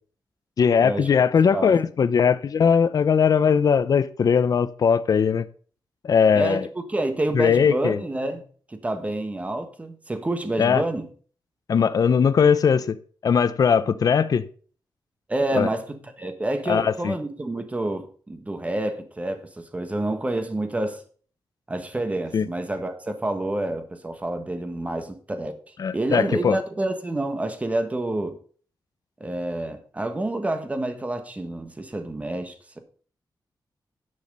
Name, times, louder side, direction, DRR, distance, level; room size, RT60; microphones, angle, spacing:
voice 1, 0.6-5.5 6.0-6.7 7.3-8.0 10.6-10.8 11.7-13.0 13.2-14.4 15.5-15.7 16.7-17.1 22.3-22.4 25.8-26.6, left 6 dB, 50° left, 0.5 m, -20 dB
voice 2, 6.3-8.4 8.7-11.1 15.3-21.0 21.7-25.6 25.9-28.4 29.2-32.8, right 2 dB, 15° right, 1.3 m, -28 dB
10.5 x 6.0 x 5.4 m
wide cardioid pair, 145°, 8 cm